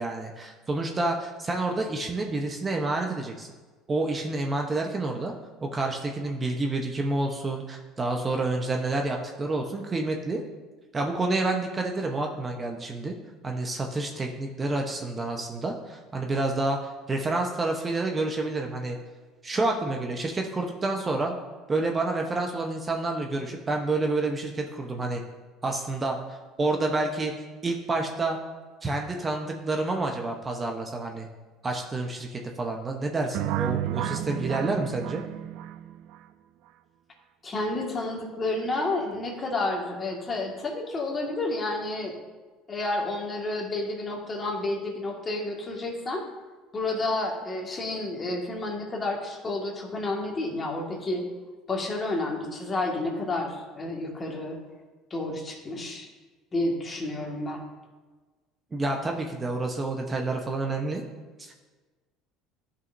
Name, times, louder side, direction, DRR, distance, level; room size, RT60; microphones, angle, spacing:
voice 1, 0.0-3.5 3.9-5.3 5.6-10.4 10.9-13.1 13.4-19.0 19.4-21.3 21.7-25.2 25.6-27.3 27.6-28.4 28.8-31.3 31.6-35.2 58.7-61.0 61.4-61.5, right 2 dB, 25° right, 2 dB, 1.0 m, -29 dB
sound 1, 33.3-36.2, right 13 dB, 70° right, 0.4 m, -31 dB
voice 2, 37.4-42.2 42.7-46.3 46.7-51.3 51.7-54.6 55.1-56.1 56.5-57.6, left 2 dB, 30° left, -1 dB, 1.9 m, -30 dB
12.0 x 5.6 x 2.7 m, 1.3 s
supercardioid pair, 85°, 0 cm